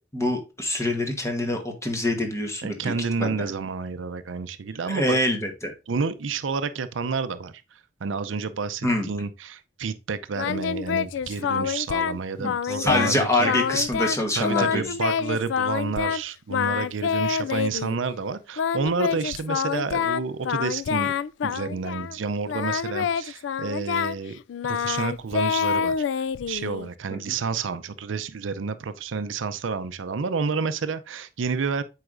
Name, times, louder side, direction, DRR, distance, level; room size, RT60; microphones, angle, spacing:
voice 1, 0.1-2.9 3.2-3.5 4.8-5.7 8.8-9.1 12.4-14.8 27.1-27.4, left 1 dB, 15° left, 1.2 m, -25 dB
voice 2, 2.6-5.4 5.9-7.5 8.0-13.5 14.3-21.1 21.4-24.4 24.7-25.9 26.5-31.8, right 5 dB, 85° right, 0.5 m, -29 dB
Singing, 10.3-12.2 12.4-13.2 13.4-14.2 14.4-16.2 16.5-18.0 18.6-22.2 22.5-26.9, left 7 dB, 70° left, 0.3 m, -27 dB
7.9 x 4.8 x 2.5 m
head